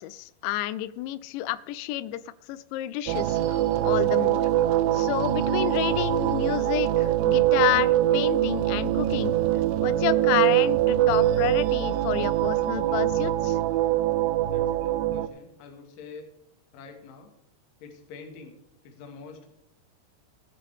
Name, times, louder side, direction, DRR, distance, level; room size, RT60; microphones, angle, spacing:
voice 1, 0.0-2.2 2.5-4.4 4.9-9.4 9.8-13.6, left 13 dB, 85° left, 16 dB, 2.8 m, -30 dB
sound 1, 3.1-15.3, right 13 dB, 80° right, 2.5 m, -23 dB
voice 2, 14.5-16.3 16.7-17.3 17.8-18.6 18.8-19.5, left 4 dB, 60° left, 3 dB, 2.8 m, -45 dB
16.5 x 10.0 x 3.5 m, 0.79 s
omnidirectional pair, 5.3 m